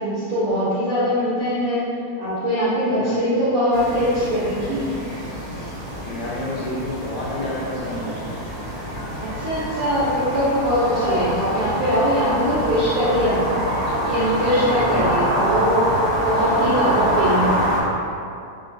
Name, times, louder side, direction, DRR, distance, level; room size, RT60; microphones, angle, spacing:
voice 1, 0.0-1.8 2.2-5.0 9.2-13.6 14.1-17.8, equal, 75° right, -11 dB, 1.3 m, -22 dB
voice 2, 2.9-3.3 6.0-8.3 12.3-12.7 14.7-15.1, left 1 dB, 75° left, -5 dB, 2.0 m, -30 dB
sound 1, 3.7-17.8, equal, 55° right, 0.7 m, -25 dB
4.7 x 2.5 x 3.9 m, 2.5 s
omnidirectional pair, 3.4 m